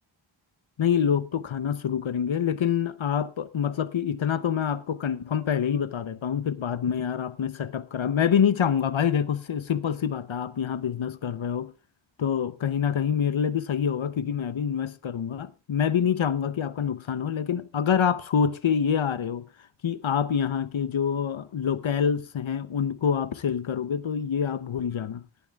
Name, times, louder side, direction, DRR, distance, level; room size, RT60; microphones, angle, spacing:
voice 1, 0.8-11.7 12.2-19.4 19.8-25.2, left 8 dB, 90° left, 0.8 m, -26 dB
19.0 x 11.0 x 2.4 m
wide cardioid pair, 50°, 46 cm